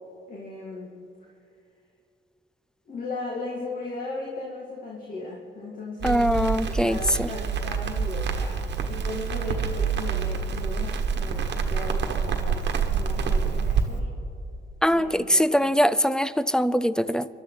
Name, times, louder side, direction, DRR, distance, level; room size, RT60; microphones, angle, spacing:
voice 1, 0.3-0.9 2.9-6.4 6.6-14.1 14.9-15.7, left 2 dB, 45° left, -3 dB, 2.3 m, -37 dB
voice 2, 6.0-7.3 14.8-17.3, equal, 5° left, 15 dB, 0.5 m, -22 dB
Crackle, 6.0-13.8, right 6 dB, 60° right, 1.4 m, -27 dB
27.5 x 12.0 x 4.1 m, 2.6 s
cardioid pair, 90°, 20 cm